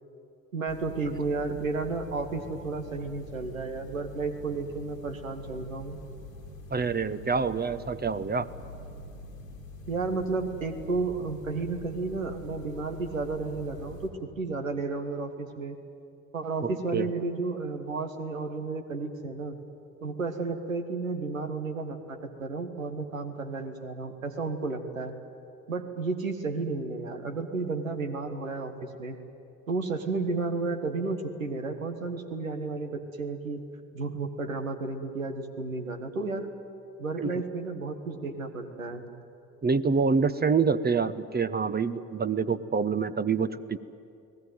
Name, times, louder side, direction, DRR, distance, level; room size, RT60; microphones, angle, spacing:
voice 1, 0.5-6.0 9.9-14.1 14.4-15.8 16.3-19.6 20.0-25.1 25.7-29.2 29.7-33.6 33.9-36.5 37.0-39.0, right 3 dB, 85° right, 6 dB, 1.6 m, -32 dB
sound 1, 0.7-14.1, left 1 dB, 85° left, 2.5 m, -44 dB
voice 2, 6.7-8.5 16.6-17.1 37.2-37.3 39.6-43.8, right 5 dB, 25° right, 13 dB, 1.0 m, -26 dB
29.5 x 19.0 x 9.2 m, 2.5 s
figure-of-eight pair, 45°, 39 cm